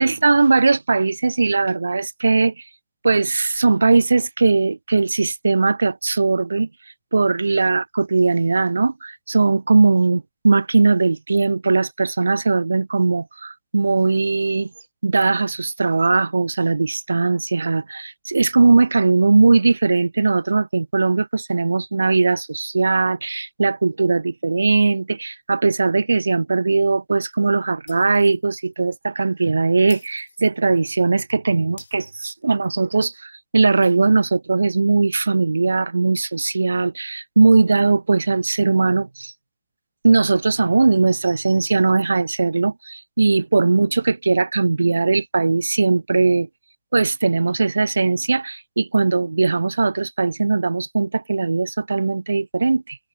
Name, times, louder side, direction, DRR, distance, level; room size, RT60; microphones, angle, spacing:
voice 1, 0.0-2.6 3.0-6.7 7.1-14.7 15.0-39.3 40.0-46.5 46.9-53.0, right 3 dB, 90° right, 0.6 m, -19 dB
Shatter, 27.9-28.4 28.7-28.9 29.9-30.9 31.8-32.8, left 6 dB, 70° left, 7.9 m, -46 dB
hypercardioid pair, 140°, 0 cm